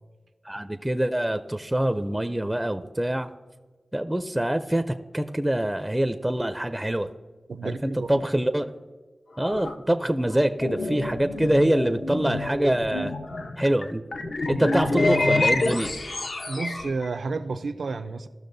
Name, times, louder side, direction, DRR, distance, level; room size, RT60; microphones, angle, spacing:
voice 1, 0.5-3.3 3.9-7.1 7.6-8.7 9.4-13.1 13.6-14.0 14.5-15.9, right 1 dB, 10° right, 8 dB, 0.4 m, -25 dB
voice 2, 7.5-8.2 16.5-18.3, right 4 dB, 80° right, 10 dB, 0.5 m, -31 dB
sound 1, 9.4-9.7 10.3-17.1, left 2 dB, 75° left, 0.8 m, -27 dB
15.5 x 6.1 x 2.6 m, 1.4 s
wide cardioid pair, 70°, 0 cm